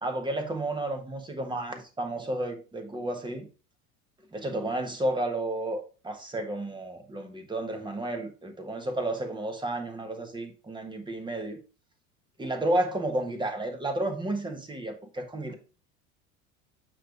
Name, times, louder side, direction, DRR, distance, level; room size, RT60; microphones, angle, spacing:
voice 1, 0.0-3.5 4.3-5.8 6.0-11.6 12.4-15.5, right 1 dB, 10° right, 1.4 m, -32 dB
8.3 x 3.2 x 4.6 m
figure-of-eight pair, 70°, 41 cm